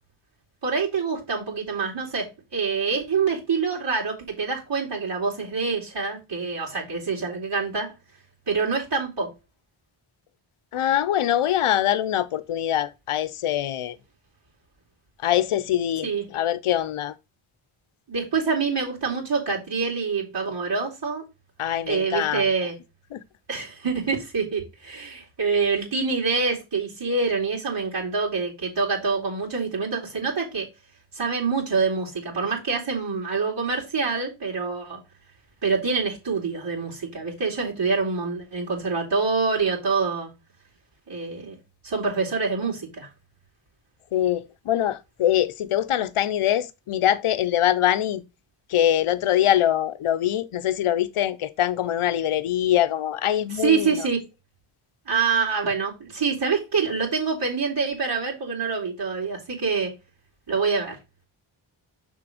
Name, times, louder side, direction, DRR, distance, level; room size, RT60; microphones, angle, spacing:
voice 1, 0.6-7.9 8.5-9.3 16.0-16.2 18.1-21.2 21.9-22.8 23.5-30.7 31.1-35.0 35.6-40.3 41.1-41.5 41.8-43.1 53.5-54.2 55.1-59.9 60.5-61.0, right 5 dB, 55° right, 2.8 m, -26 dB
voice 2, 10.7-14.0 15.2-17.1 21.6-22.4 23.1-23.2 44.1-48.2 48.7-54.1, left 11 dB, 75° left, 0.7 m, -23 dB
6.1 x 3.8 x 4.9 m
wide cardioid pair, 90°, 50 cm